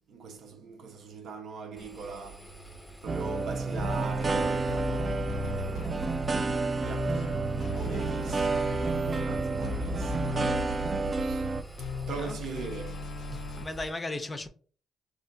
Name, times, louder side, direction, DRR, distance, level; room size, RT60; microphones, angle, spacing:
voice 1, 0.1-2.8 3.0-13.6, right 4 dB, 75° right, 0.7 m, -42 dB
Engine, 1.8-13.9, right 2 dB, ahead, 0.8 m, -48 dB
sound 1, 3.1-11.6, right 3 dB, 30° right, 0.3 m, -30 dB
sound 2, 3.7-13.6, left 3 dB, 80° left, 0.6 m, -38 dB
voice 2, 13.3-14.5, left 2 dB, 25° left, 0.5 m, -36 dB
4.3 x 2.5 x 2.5 m
cardioid pair, 100°, 0 cm